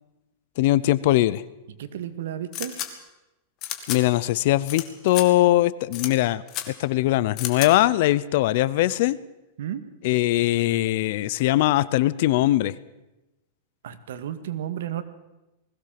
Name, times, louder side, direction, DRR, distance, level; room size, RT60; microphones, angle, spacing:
voice 1, 0.6-1.4 3.9-9.2 10.0-12.7, left 15 dB, 55° left, 19 dB, 0.8 m, -21 dB
voice 2, 1.8-2.7 9.6-9.8 13.8-15.0, right 10 dB, 80° right, 11 dB, 1.9 m, -32 dB
sound 1, 2.5-2.9 3.6-4.0 4.7-4.8 5.1-5.2 5.9-6.1 6.5-6.6 7.4-7.7, left 12 dB, 30° left, 2.2 m, -31 dB
20.5 x 16.5 x 7.7 m, 0.98 s
supercardioid pair, 160°, 0 cm